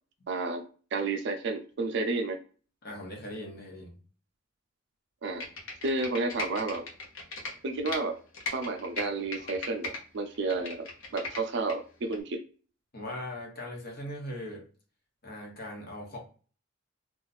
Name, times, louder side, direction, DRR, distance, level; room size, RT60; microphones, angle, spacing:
voice 1, 0.3-0.6 0.9-2.4 5.2-5.4 5.8-6.8 7.6-8.1 8.5-10.9 11.1-12.4, right 3 dB, 60° right, 5 dB, 0.5 m, -31 dB
voice 2, 2.8-4.0 9.4-9.5 12.9-14.6 15.2-16.2, left 1 dB, 50° left, 0 dB, 1.0 m, -40 dB
Computer keyboard, 5.2-8.0 8.3-10.0 10.3-11.7 12.1-12.2, left 3 dB, 85° left, 0.9 m, -38 dB
2.4 x 2.4 x 4.0 m, 0.38 s
head